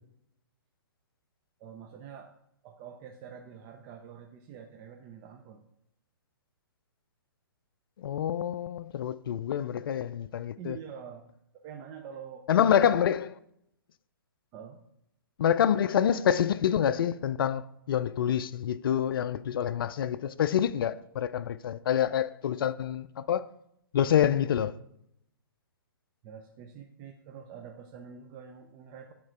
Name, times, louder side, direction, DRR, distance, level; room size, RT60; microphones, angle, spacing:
voice 1, 1.6-2.3 2.6-5.6 10.6-11.3 11.5-13.1 14.5-14.8 26.2-29.1, right 7 dB, 30° right, 0.6 m, -46 dB
voice 2, 8.0-10.8 12.5-13.2 15.4-23.5 23.9-24.8, left 9 dB, 65° left, 0.4 m, -27 dB
8.9 x 3.7 x 4.4 m
hypercardioid pair, 135°, 12 cm